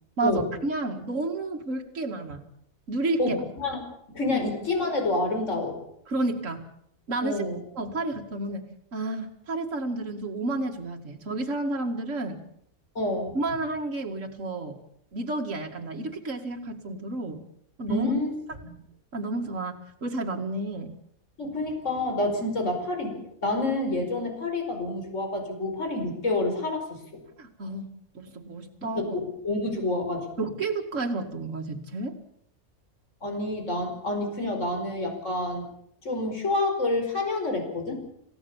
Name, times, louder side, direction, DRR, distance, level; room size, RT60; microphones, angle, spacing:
voice 1, 0.2-2.4 2.9-3.4 4.3-4.4 6.1-6.7 7.1-7.4 7.8-12.4 13.3-14.8 15.1-17.4 17.8-18.1 18.5-18.6 19.1-20.9 27.4-27.9 28.1-29.2 30.4-32.1, right 2 dB, 60° right, 0 dB, 2.4 m, -31 dB
voice 2, 4.1-5.8 7.2-7.6 13.0-13.4 17.9-18.4 18.6-18.7 21.4-27.0 29.0-30.3 33.2-35.7 36.0-37.9, left 2 dB, 55° left, 4 dB, 5.3 m, -28 dB
27.5 x 16.5 x 7.2 m, 0.71 s
omnidirectional pair, 1.5 m